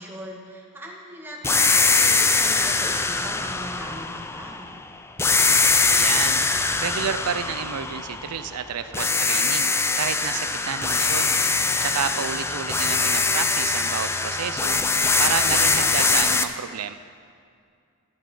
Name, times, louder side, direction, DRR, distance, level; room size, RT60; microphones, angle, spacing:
voice 1, 0.0-4.7, equal, 10° right, -2 dB, 1.9 m, -39 dB
sound 1, 1.4-4.7 5.2-8.6 8.9-16.4, left 4 dB, 10° left, 0.4 m, -22 dB
voice 2, 5.8-6.4 6.8-11.3 11.8-14.8 15.2-16.9, right 7 dB, 90° right, 11 dB, 0.5 m, -30 dB
14.0 x 11.5 x 5.5 m, 2.3 s
head